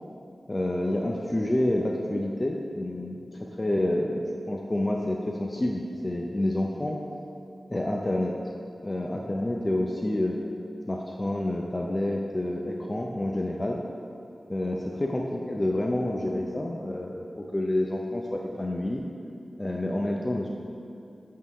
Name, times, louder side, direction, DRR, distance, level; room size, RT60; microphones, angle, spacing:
voice 1, 0.5-7.0 7.7-8.3 8.8-10.4 10.9-13.8 14.5-19.0 19.6-20.5, left 1 dB, 30° left, 0 dB, 0.5 m, -28 dB
8.4 x 3.7 x 5.5 m, 2.6 s
wide cardioid pair, 70°, 0 cm